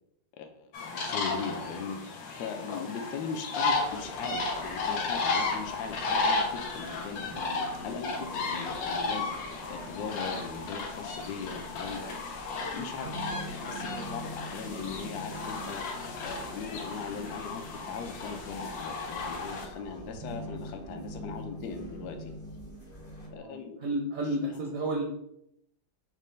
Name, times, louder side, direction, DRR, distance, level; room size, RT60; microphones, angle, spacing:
voice 1, 0.4-7.3 7.8-12.4 12.7-22.3 23.3-23.8, left 5 dB, 70° left, 4 dB, 1.1 m, -39 dB
sound 1, 0.7-19.7, left 3 dB, 90° left, 1.4 m, -34 dB
sound 2, 3.6-23.3, equal, 35° left, 0.5 m, -50 dB
sound 3, 4.6-23.4, right 2 dB, 85° right, 1.3 m, -46 dB
voice 2, 23.2-25.0, right 1 dB, 70° right, -1 dB, 0.8 m, -32 dB
5.2 x 2.2 x 3.2 m, 0.77 s
omnidirectional pair, 2.0 m